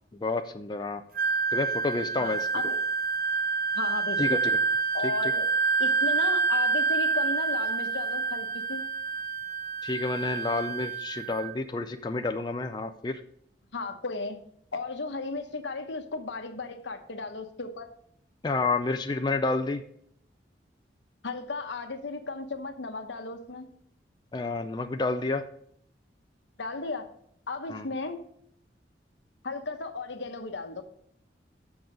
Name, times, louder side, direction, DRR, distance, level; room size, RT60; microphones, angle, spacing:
voice 1, 0.2-1.0 1.5-2.5 4.2-4.6 5.2-5.3 9.8-13.2 18.4-19.8 24.3-25.4 27.7-27.9, left 3 dB, 25° left, 7 dB, 0.4 m, -29 dB
Wind instrument woodwind instrument, 1.1-11.5, right 5 dB, 50° right, 0.7 m, -28 dB
voice 2, 2.2-2.8 3.7-4.2 4.9-5.4 5.8-8.8 13.7-14.4 14.7-17.9 21.2-23.7 26.6-27.0 27.5-28.2 29.4-30.8, left 3 dB, 80° left, 7 dB, 1.0 m, -35 dB
7.2 x 6.0 x 5.0 m, 0.68 s
head